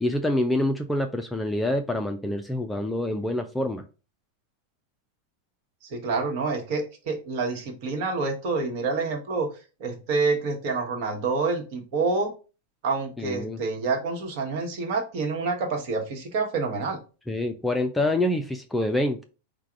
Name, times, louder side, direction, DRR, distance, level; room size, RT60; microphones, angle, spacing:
voice 1, 0.0-3.8 13.2-13.6 17.3-19.3, left 1 dB, 5° left, 6 dB, 0.4 m, -26 dB
voice 2, 5.9-9.5 9.8-12.3 12.8-17.0, right 4 dB, 45° right, 3 dB, 1.1 m, -27 dB
4.7 x 2.2 x 4.5 m, 0.33 s
figure-of-eight pair, 90°, 0 cm